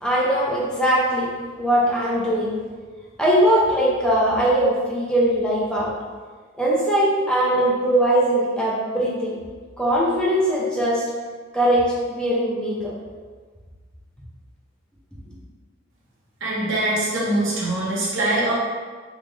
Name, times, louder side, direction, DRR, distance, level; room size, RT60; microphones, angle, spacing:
voice 1, 0.0-1.3 1.6-2.5 3.2-5.9 6.6-9.4 9.8-11.0 11.5-12.9, right 1 dB, 5° left, -6 dB, 0.5 m, -20 dB
voice 2, 16.4-18.5, right 1 dB, 70° right, -7 dB, 1.1 m, -23 dB
3.6 x 2.5 x 3.1 m, 1.5 s
head